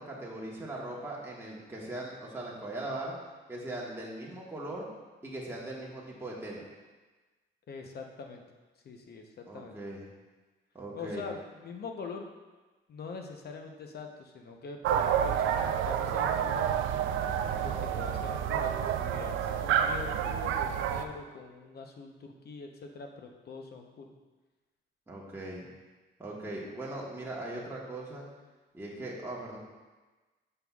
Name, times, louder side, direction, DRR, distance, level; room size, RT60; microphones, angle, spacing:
voice 1, 0.0-3.1 3.5-4.9 5.2-6.6 9.5-10.0 10.7-11.3 25.1-25.6 26.2-28.2 28.7-29.6, right 1 dB, 10° right, -4 dB, 1.2 m, -39 dB
voice 2, 7.7-8.4 8.8-9.8 10.9-12.3 12.9-16.7 17.6-24.1, left 4 dB, 55° left, 4 dB, 0.8 m, -43 dB
sound 1, 14.8-21.0, right 9 dB, 85° right, 0.4 m, -29 dB
7.8 x 5.5 x 2.3 m, 1.3 s
cardioid pair, 90°, 20 cm